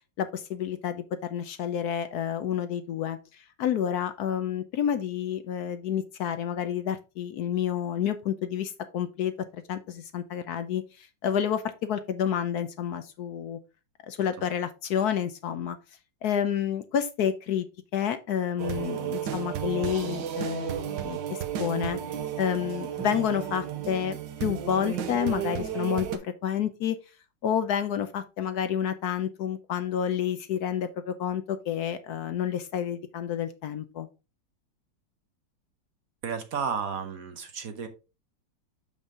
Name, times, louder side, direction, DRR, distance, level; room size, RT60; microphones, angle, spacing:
voice 1, 0.2-1.0 1.3-13.6 14.1-15.8 16.2-17.7 17.9-22.0 22.4-27.0 27.4-34.1, left 9 dB, 70° left, 10 dB, 1.1 m, -29 dB
sound 1, 18.6-26.2, right 9 dB, 90° right, 1.6 m, -33 dB
voice 2, 36.2-37.9, right 6 dB, 55° right, 8 dB, 1.3 m, -32 dB
7.1 x 5.4 x 3.6 m, 0.29 s
omnidirectional pair, 2.0 m